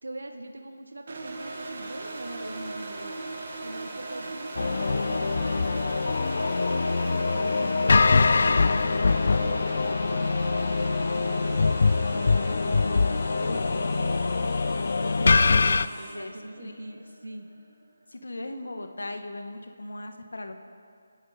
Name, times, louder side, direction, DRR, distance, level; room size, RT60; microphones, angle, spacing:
voice 1, 0.0-3.2 3.6-5.9 6.3-14.7 15.0-17.5, right 1 dB, 90° right, 5 dB, 1.3 m, -42 dB
sound 1, 1.1-17.9, right 2 dB, 55° right, 2.0 m, -39 dB
sound 2, 1.3-16.1, left 1 dB, 5° right, 4.4 m, -48 dB
sound 3, 4.6-15.9, left 4 dB, 60° left, 0.5 m, -23 dB
voice 2, 15.7-17.0 18.1-20.5, left 2 dB, 90° left, 6 dB, 1.6 m, -39 dB
26.5 x 10.5 x 5.1 m, 2.2 s
figure-of-eight pair, 165°, 0 cm